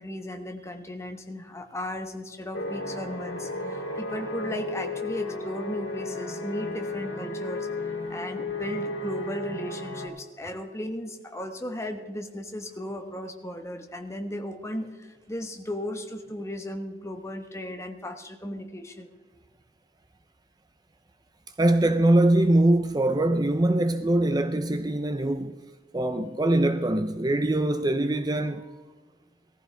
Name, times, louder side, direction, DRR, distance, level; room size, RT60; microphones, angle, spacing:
voice 1, 0.0-7.7 8.1-19.1, left 1 dB, 15° left, 1.2 m, -36 dB
sound 1, 2.5-10.1, left 2 dB, 75° left, 3.0 m, -33 dB
voice 2, 21.6-25.6 25.9-28.8, right 1 dB, 20° right, 0.5 m, -23 dB
19.0 x 14.5 x 3.4 m
head